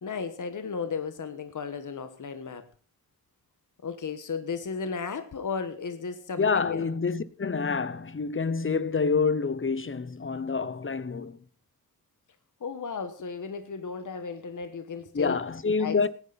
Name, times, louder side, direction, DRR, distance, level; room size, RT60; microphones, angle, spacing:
voice 1, 0.0-2.7 3.8-6.9 12.6-15.4 15.8-16.1, left 5 dB, 55° left, 1.3 m, -34 dB
voice 2, 6.4-11.4 15.1-16.1, left 5 dB, 35° left, 0.8 m, -27 dB
17.0 x 9.9 x 4.0 m
cardioid pair, 65°, 36 cm